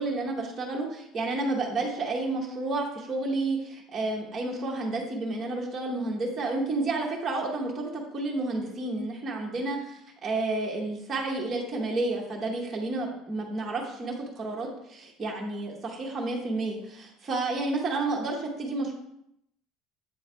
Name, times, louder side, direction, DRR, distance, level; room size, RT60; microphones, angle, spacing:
voice 1, 0.0-9.8 10.2-18.9, right 2 dB, 20° right, -2 dB, 0.9 m, -30 dB
7.9 x 3.2 x 4.3 m, 0.76 s
cardioid pair, 170°, 0 cm